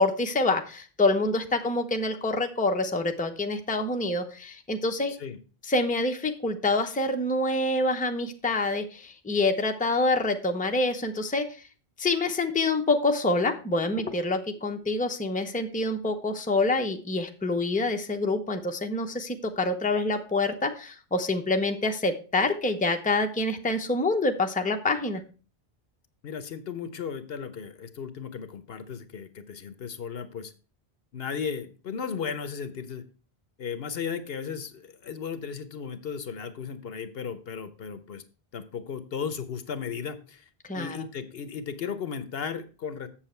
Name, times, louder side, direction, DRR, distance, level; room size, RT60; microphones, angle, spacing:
voice 1, 0.0-5.1 5.7-11.4 12.0-25.2 40.7-41.0, left 2 dB, 10° left, 5 dB, 0.7 m, -26 dB
voice 2, 26.2-30.5 31.1-33.0 33.6-38.2 38.5-40.4 40.7-43.1, left 6 dB, 70° left, 12 dB, 1.0 m, -35 dB
7.4 x 7.2 x 4.3 m, 0.35 s
omnidirectional pair, 1.1 m